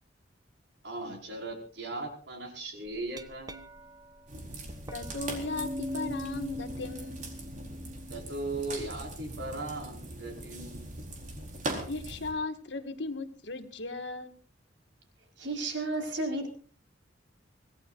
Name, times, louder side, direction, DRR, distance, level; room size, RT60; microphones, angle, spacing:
voice 1, 0.8-3.6 8.1-10.9, right 2 dB, 70° right, 2 dB, 5.2 m, -38 dB
Glass, 2.9-9.0, left 1 dB, 20° right, 0.9 m, -42 dB
sound 1, 4.3-12.3, right 1 dB, 45° right, 4.2 m, -41 dB
voice 2, 4.9-7.3 11.9-14.3, left 3 dB, 70° left, 6 dB, 1.9 m, -37 dB
voice 3, 15.4-16.5, right 2 dB, 90° right, 2 dB, 4.9 m, -32 dB
25.5 x 18.0 x 2.6 m, 0.40 s
head